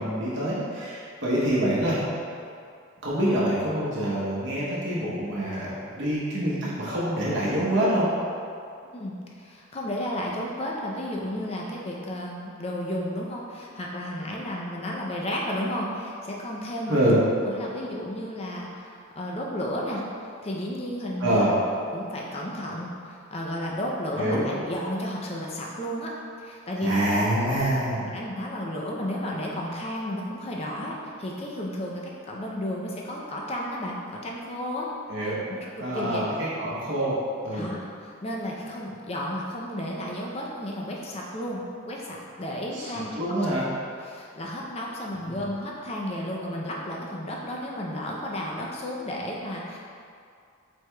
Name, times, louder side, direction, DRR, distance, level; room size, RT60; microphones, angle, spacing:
voice 1, 0.0-2.0 3.0-8.1 16.9-17.2 21.2-21.5 24.2-24.4 26.8-28.0 35.1-35.4 35.8-37.2 37.4-37.7 42.7-42.9 43.2-43.6 45.3-45.4, right 1 dB, 55° right, -8 dB, 0.9 m, -26 dB
voice 2, 8.9-17.0 17.4-21.5 21.9-26.1 26.4-27.1 28.0-34.9 35.2-36.2 37.5-43.2 44.0-49.8, left 1 dB, 30° left, -2 dB, 0.5 m, -33 dB
4.7 x 4.5 x 2.3 m, 2.4 s
head